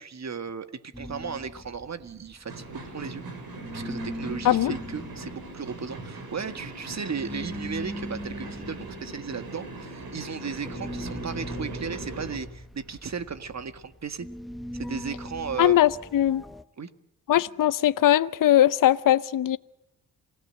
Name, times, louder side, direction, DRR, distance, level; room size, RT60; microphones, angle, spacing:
voice 1, 0.0-3.2 3.7-14.3 14.7-15.8 16.8-16.9, right 6 dB, 45° right, 1.8 m, -35 dB
sound 1, 0.9-3.3 3.6-16.6, equal, ahead, 1.3 m, -40 dB
sound 2, 2.5-12.4, right 2 dB, 70° right, 6.6 m, -40 dB
voice 2, 15.6-16.4 17.3-19.6, left 12 dB, 60° left, 0.8 m, -20 dB
28.0 x 16.5 x 7.8 m
supercardioid pair, 50°, 37 cm